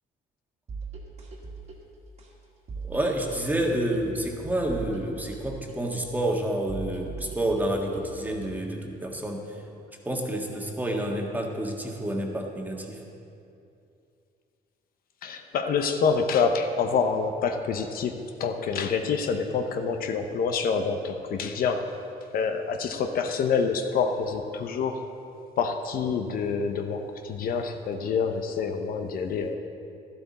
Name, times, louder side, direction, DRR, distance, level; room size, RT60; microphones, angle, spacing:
sound 1, 0.7-8.7, right 4 dB, 40° right, 1.9 m, -41 dB
voice 1, 2.8-9.4 10.0-13.0, right 1 dB, 10° right, 0 dB, 1.5 m, -29 dB
voice 2, 15.2-22.0 22.3-25.0 25.6-29.6, left 5 dB, 60° left, 6 dB, 0.8 m, -27 dB
12.5 x 11.5 x 4.2 m, 2.6 s
cardioid pair, 110°, 17 cm